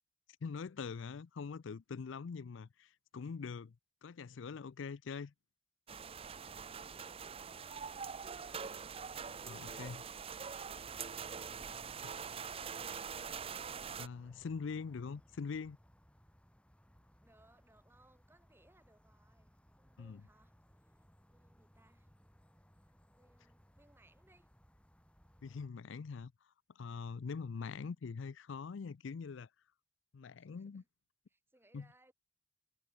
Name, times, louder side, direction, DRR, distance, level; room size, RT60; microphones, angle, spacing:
voice 1, 0.4-3.8 4.0-5.3 9.5-10.0 12.0-12.1 14.0-15.8 20.0-20.2 25.4-26.3 26.8-29.5 30.1-30.8 31.7-31.9, left 5 dB, 70° left, 0.4 m, -43 dB
sound 1, 5.9-14.1, right 6 dB, 30° right, 0.6 m, -44 dB
sound 2, 10.8-25.7, equal, 5° left, 5.9 m, -65 dB
voice 2, 17.2-19.5 19.8-20.5 20.8-21.0 21.3-22.1 23.2-24.5 30.4-30.9 31.3-32.1, right 1 dB, 10° right, 2.0 m, -69 dB
head